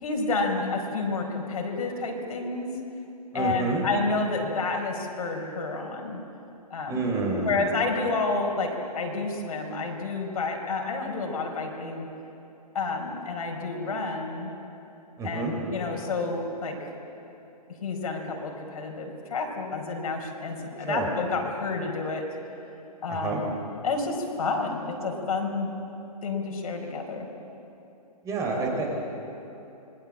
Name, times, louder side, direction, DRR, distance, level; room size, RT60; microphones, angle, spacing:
voice 1, 0.0-2.7 3.3-6.2 6.7-7.0 7.4-8.7 8.9-12.1 12.7-14.5 15.2-16.8 17.8-22.2 23.0-23.5 23.8-25.7 26.2-27.3, left 3 dB, 65° left, 2 dB, 4.8 m, -30 dB
voice 2, 3.3-3.8 6.9-7.6 15.2-15.5 20.8-21.1 23.1-23.4 28.2-28.9, right 3 dB, 15° right, 0 dB, 3.9 m, -28 dB
26.5 x 21.5 x 7.6 m, 2.9 s
hypercardioid pair, 145°, 21 cm